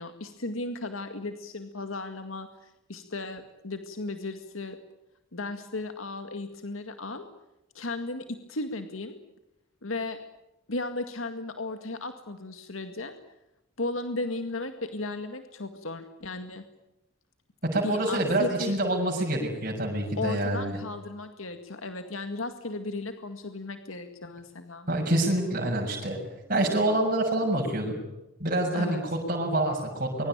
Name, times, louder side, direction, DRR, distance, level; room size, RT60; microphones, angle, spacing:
voice 1, 0.0-4.8 5.3-7.3 7.7-9.1 9.8-10.2 10.7-13.1 13.8-16.6 17.8-18.8 20.2-24.9 28.7-29.0, left 2 dB, 90° left, 7 dB, 2.1 m, -35 dB
voice 2, 17.7-20.8 24.9-26.2 26.5-27.9 28.4-30.3, right 1 dB, 45° right, -1 dB, 6.6 m, -26 dB
24.5 x 23.5 x 9.0 m, 0.92 s
head